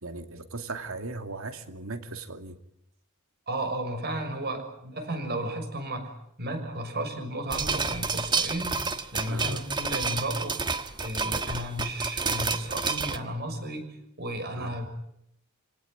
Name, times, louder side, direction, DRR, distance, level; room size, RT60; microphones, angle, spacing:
voice 1, 0.0-2.6 9.3-9.6 14.5-14.8, right 3 dB, 70° right, 8 dB, 2.6 m, -38 dB
voice 2, 3.5-6.1 6.4-8.7 9.1-10.6 11.0-14.9, right 1 dB, 50° right, 7 dB, 6.4 m, -33 dB
sound 1, 7.5-13.2, right 4 dB, 20° right, 1.4 m, -30 dB
28.0 x 18.5 x 9.8 m, 0.76 s
head